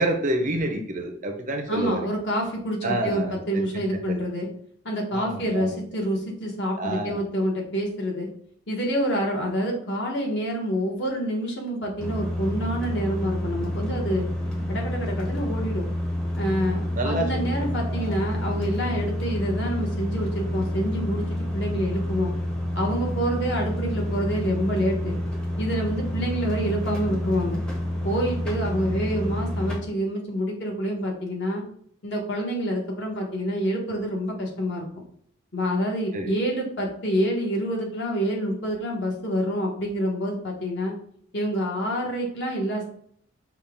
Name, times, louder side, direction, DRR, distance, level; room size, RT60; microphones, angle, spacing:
voice 1, 0.0-2.1 2.8-3.6 4.1-4.2 5.1-5.8 6.8-7.2 16.9-18.3 36.1-36.4, right 1 dB, 35° right, 3 dB, 0.6 m, -28 dB
voice 2, 1.7-4.5 4.8-8.3 8.7-14.3 14.7-15.9 16.4-22.3 22.7-25.2 25.6-27.6 28.0-31.6 32.0-34.8 35.5-40.9 41.3-42.9, equal, 55° left, -1 dB, 1.2 m, -27 dB
sound 1, 12.0-29.8, left 1 dB, 5° left, 0.7 m, -29 dB
5.6 x 2.3 x 3.5 m, 0.62 s
head